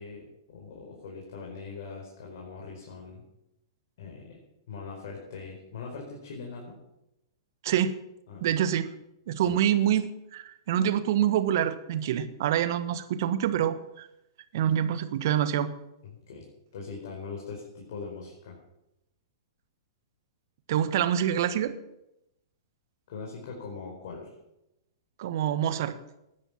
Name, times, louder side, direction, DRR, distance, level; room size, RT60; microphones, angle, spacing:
voice 1, 0.0-3.2 4.0-4.4 4.7-6.7 8.3-8.4 9.4-9.6 16.0-16.4 16.7-18.6 23.1-24.3, left 4 dB, 60° left, -1 dB, 4.7 m, -41 dB
voice 2, 7.6-8.0 8.4-8.9 9.3-14.1 14.5-15.7 20.7-21.7 25.2-26.0, right 10 dB, 55° right, 12 dB, 1.4 m, -26 dB
20.0 x 10.0 x 6.0 m, 0.88 s
figure-of-eight pair, 105°, 2 cm